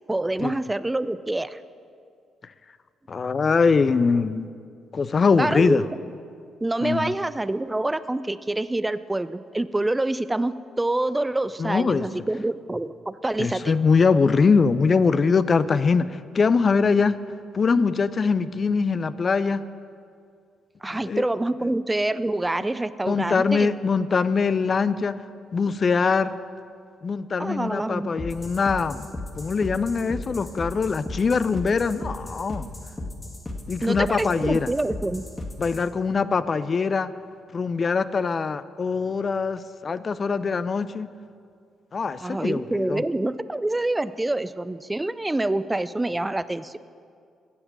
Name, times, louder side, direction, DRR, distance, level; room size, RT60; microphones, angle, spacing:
voice 1, 0.1-1.6 5.4-5.9 6.6-13.7 20.8-23.7 27.4-28.1 33.8-35.2 42.2-46.8, right 2 dB, 15° right, 15 dB, 0.5 m, -26 dB
voice 2, 3.1-4.5 4.9-5.9 6.8-7.1 11.6-12.1 13.4-17.2 17.5-19.6 20.9-21.2 23.1-25.1 25.5-26.3 27.0-29.1 29.4-32.7 33.7-34.7 35.6-37.1 37.5-41.1 41.9-43.0, left 5 dB, 45° left, 14 dB, 0.5 m, -22 dB
sound 1, 28.2-35.8, left 2 dB, 25° left, 1.9 m, -35 dB
14.0 x 7.9 x 7.3 m, 2.3 s
hypercardioid pair, 40°, 0 cm